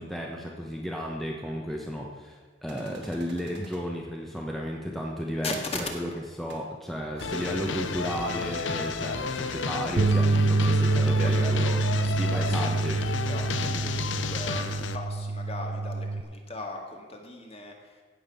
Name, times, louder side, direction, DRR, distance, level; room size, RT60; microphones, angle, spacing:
voice 1, 0.0-6.1 6.4-11.8 12.2-13.0 13.6-13.9, equal, ahead, -1 dB, 1.1 m, -33 dB
sound 1, 2.7-3.8 5.5-5.6 5.8-5.9 6.5-6.6 7.2-7.3, right 3 dB, 65° right, 2.0 m, -48 dB
voice 2, 5.4-5.8 7.3-7.4 10.7-17.7, left 2 dB, 35° left, 2 dB, 1.9 m, -39 dB
sound 2, 7.2-15.0, left 4 dB, 80° left, 0.8 m, -32 dB
sound 3, 10.0-16.2, right 3 dB, 45° right, 0.4 m, -26 dB
16.0 x 6.0 x 7.0 m, 1.4 s
head